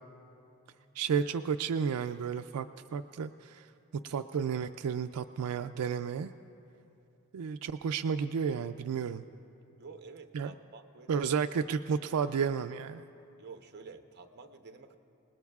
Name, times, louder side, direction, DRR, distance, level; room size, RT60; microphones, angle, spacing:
voice 1, 1.0-3.7 4.0-6.3 7.3-9.2 10.3-10.5 11.1-13.0, right 6 dB, 85° right, 9 dB, 0.4 m, -32 dB
voice 2, 9.8-11.3 13.4-14.9, right 4 dB, 50° right, 6 dB, 0.8 m, -50 dB
28.0 x 19.5 x 2.4 m, 2.7 s
head